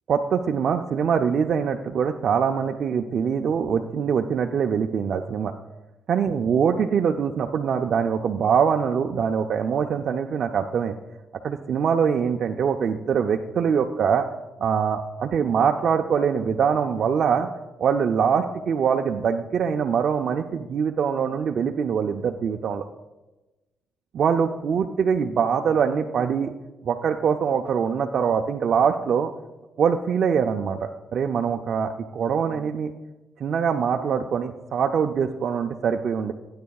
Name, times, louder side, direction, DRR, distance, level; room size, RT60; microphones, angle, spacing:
voice 1, 0.1-5.5 6.1-10.9 11.4-14.3 14.6-17.5 17.8-22.9 24.1-26.5 26.8-29.3 29.8-32.9 33.4-36.3, right 7 dB, 60° right, 3 dB, 0.5 m, -23 dB
17.5 x 9.5 x 2.3 m, 1.1 s
cardioid pair, 90°, 0 cm